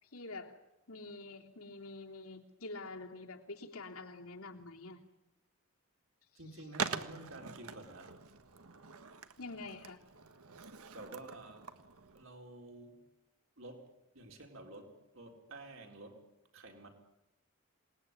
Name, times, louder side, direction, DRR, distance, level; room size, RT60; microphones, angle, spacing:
voice 1, 0.0-0.6 0.9-5.0 9.4-10.0, left 3 dB, 80° left, 3.2 m, -46 dB
voice 2, 6.3-8.3 10.9-11.8 12.1-13.1 13.6-16.9, right 2 dB, 65° right, 4.3 m, -51 dB
Skateboard, 6.7-12.2, right 5 dB, 80° right, 1.6 m, -44 dB
27.5 x 20.0 x 9.7 m
head